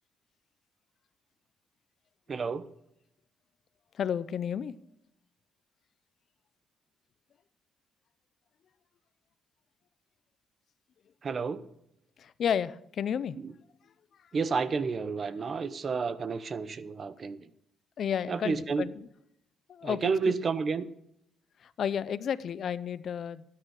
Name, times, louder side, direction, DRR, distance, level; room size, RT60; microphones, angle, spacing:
voice 1, 2.3-2.6 11.2-11.7 13.4-13.5 14.3-17.5 18.3-18.9 19.8-20.9, right 5 dB, 45° right, 0.9 m, -30 dB
voice 2, 3.9-4.7 12.2-13.4 18.0-19.1 19.7-20.3 21.6-23.4, left 8 dB, 60° left, 0.6 m, -32 dB
13.0 x 9.7 x 4.8 m
cardioid pair, 90°, 0 cm